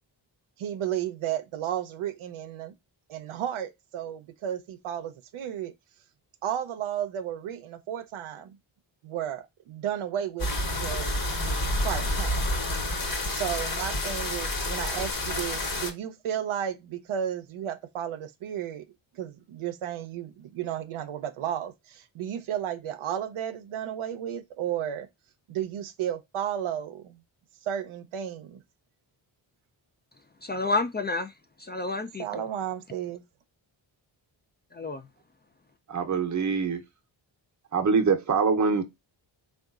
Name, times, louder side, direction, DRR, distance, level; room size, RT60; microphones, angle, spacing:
voice 1, 0.6-2.7 3.1-5.7 6.4-8.6 9.0-11.2 11.8-12.4 13.3-25.1 25.5-27.2 27.6-28.6 32.2-33.2, right 10 dB, 80° right, 0.6 m, -33 dB
sound 1, 10.4-15.9, left 1 dB, 40° left, 1.1 m, -29 dB
voice 2, 30.4-31.3 31.6-32.4 34.7-35.1, left 3 dB, 25° left, 0.3 m, -30 dB
voice 3, 35.9-36.8 37.7-38.8, right 5 dB, 35° right, 0.7 m, -24 dB
3.6 x 2.4 x 2.3 m
cardioid pair, 50°, 49 cm